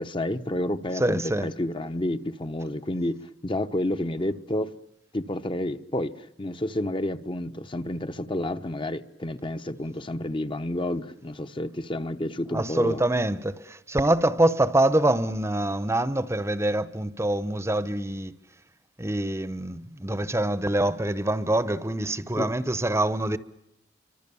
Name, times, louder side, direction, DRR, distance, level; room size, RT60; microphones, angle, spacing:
voice 1, 0.0-3.2 3.4-4.7 5.1-13.0 22.4-22.5, left 1 dB, 30° left, 1.0 m, -30 dB
voice 2, 1.0-1.5 12.5-18.3 19.0-23.4, right 1 dB, 15° right, 1.0 m, -25 dB
29.5 x 25.0 x 7.1 m
head